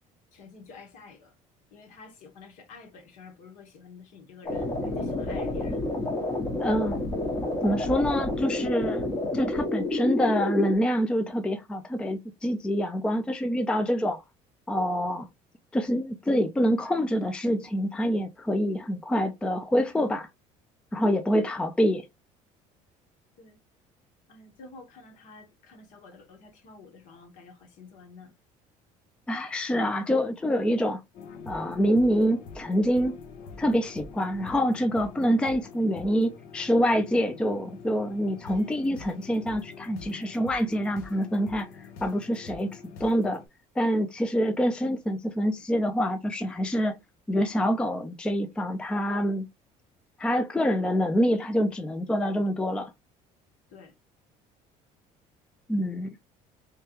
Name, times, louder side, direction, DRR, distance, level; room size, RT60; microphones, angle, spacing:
voice 1, 0.3-1.3 1.7-5.8 23.4-23.6 24.3-28.3 51.3-51.4 53.7-53.9, left 4 dB, 60° left, 1.5 m, -49 dB
sound 1, 4.4-10.7, left 2 dB, 20° left, 0.9 m, -29 dB
voice 2, 6.6-7.0 7.6-14.2 14.7-15.3 15.7-20.3 20.9-22.0 29.3-31.0 31.5-33.2 33.6-41.7 42.0-42.7 43.0-43.4 43.8-47.0 47.3-49.5 50.2-52.9 55.7-56.1, equal, 5° left, 0.3 m, -26 dB
sound 2, 31.1-43.5, left 4 dB, 75° left, 0.8 m, -45 dB
3.4 x 3.2 x 3.0 m
cardioid pair, 150°, 14 cm